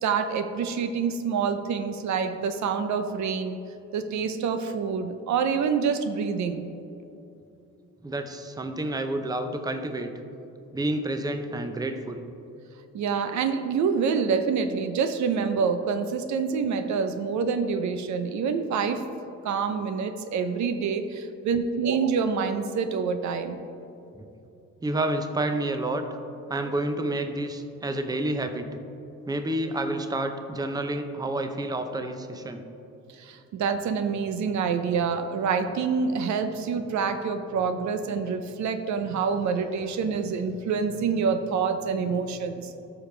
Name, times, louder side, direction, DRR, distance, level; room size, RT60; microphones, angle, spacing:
voice 1, 0.0-3.6 3.9-6.7 12.9-19.0 19.4-23.6 33.2-42.7, right 6 dB, 70° right, 9 dB, 0.6 m, -27 dB
voice 2, 8.0-10.1 10.7-12.2 24.1-24.3 24.8-26.1 26.5-28.7 29.3-32.6, right 1 dB, 15° right, 7 dB, 0.6 m, -29 dB
13.0 x 5.2 x 3.3 m, 2.7 s
cardioid pair, 90°, 30 cm